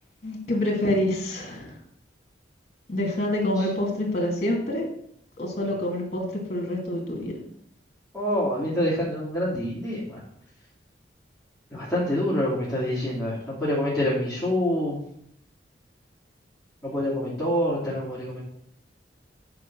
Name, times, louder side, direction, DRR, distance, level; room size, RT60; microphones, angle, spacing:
voice 1, 0.2-1.7 2.9-4.8 5.4-6.2 6.5-7.3, left 1 dB, 40° left, 0 dB, 2.4 m, -26 dB
voice 2, 8.1-10.2 11.7-15.0 16.8-18.4, left 1 dB, ahead, -10 dB, 2.5 m, -26 dB
9.5 x 4.7 x 6.1 m, 0.69 s
head